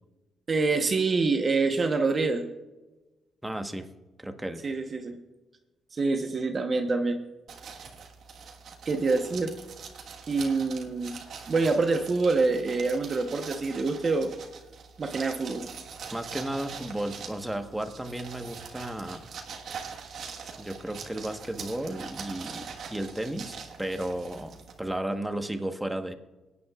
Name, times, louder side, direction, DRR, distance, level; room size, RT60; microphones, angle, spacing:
voice 1, 0.5-2.4 4.6-5.2 5.9-7.2 8.9-9.5 10.3-11.2 11.5-14.3 15.0-15.7, right 3 dB, 40° right, 5 dB, 1.0 m, -26 dB
voice 2, 3.4-3.9 4.2-4.6 16.1-19.3 20.6-24.5 24.8-26.1, right 1 dB, 5° right, 6 dB, 1.2 m, -34 dB
sound 1, 7.5-25.0, right 6 dB, 65° right, 1.5 m, -43 dB
24.0 x 9.7 x 2.4 m, 1.1 s
cardioid pair, 90°, 0 cm